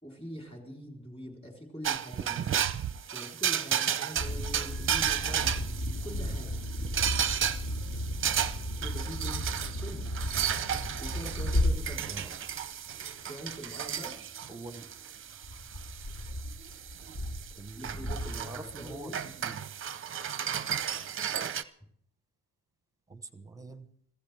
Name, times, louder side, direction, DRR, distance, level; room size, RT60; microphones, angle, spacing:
voice 1, 0.0-2.7 3.1-5.5 6.0-6.6 8.8-9.5 9.8-10.1 11.0-12.2 13.2-14.1 17.8-19.3, equal, 15° left, 0 dB, 3.7 m, -43 dB
sound 1, 1.8-21.6, right 9 dB, 30° right, 0.6 m, -34 dB
sound 2, 4.2-13.1 13.5-13.9 14.1-14.2 15.4-19.1, left 1 dB, 50° left, 3.0 m, -34 dB
voice 2, 14.5-14.9 17.5-19.7 23.1-23.9, right 2 dB, 10° right, 10 dB, 0.9 m, -45 dB
25.5 x 15.5 x 3.4 m, 0.65 s
cardioid pair, 180°, 41 cm